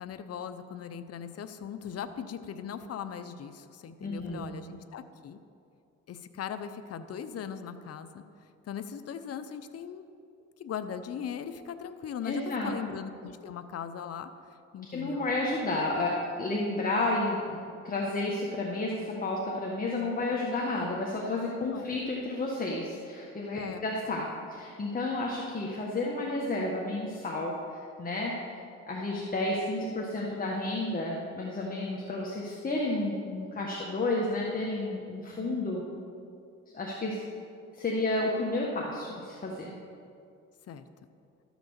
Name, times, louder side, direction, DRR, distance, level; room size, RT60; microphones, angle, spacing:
voice 1, 0.0-5.4 6.1-8.2 8.7-10.0 10.6-14.3 14.7-15.3 21.6-21.9 23.5-23.8 40.7-40.8, left 8 dB, 55° left, 10 dB, 0.7 m, -39 dB
voice 2, 4.0-4.5 12.2-12.7 14.9-17.6 17.8-27.5 28.0-28.3 28.9-35.8 36.7-37.2 37.7-39.7, left 2 dB, 30° left, -3 dB, 1.5 m, -31 dB
13.0 x 6.1 x 7.0 m, 2.4 s
cardioid pair, 90°, 30 cm